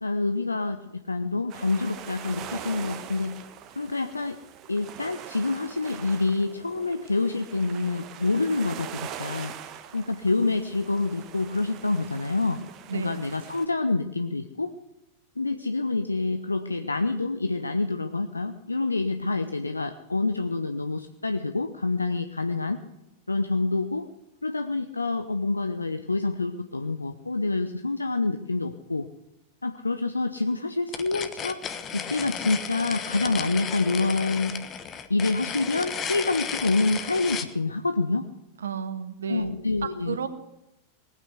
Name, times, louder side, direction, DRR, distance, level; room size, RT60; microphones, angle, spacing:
voice 1, 0.0-3.3 3.8-4.4 4.7-9.5 9.9-12.6 12.9-14.7 15.4-22.8 23.3-24.1 24.4-29.1 29.6-31.6 31.9-34.6 35.1-38.3 39.3-40.2, left 3 dB, 80° left, 8 dB, 0.7 m, -27 dB
sound 1, 1.5-13.7, right 9 dB, 35° right, 1.4 m, -42 dB
sound 2, 30.9-37.5, left 7 dB, 25° left, 1.2 m, -34 dB
voice 2, 38.6-39.5 40.0-40.3, right 7 dB, 70° right, 10 dB, 1.4 m, -32 dB
19.0 x 9.2 x 8.2 m, 0.92 s
figure-of-eight pair, 90°, 0 cm